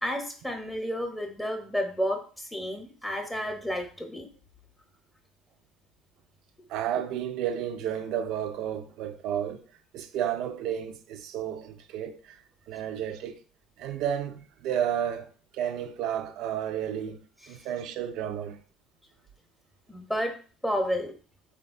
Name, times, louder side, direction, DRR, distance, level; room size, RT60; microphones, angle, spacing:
voice 1, 0.0-4.3 17.5-17.7 19.9-20.3 20.6-21.1, equal, 10° left, 0.7 m, -31 dB
voice 2, 6.7-9.6 9.9-12.4 12.7-13.4 13.8-15.3 15.5-17.2 17.5-18.6, right 9 dB, 70° right, 0.3 m, -32 dB
3.3 x 2.2 x 2.4 m
hypercardioid pair, 70°, 0 cm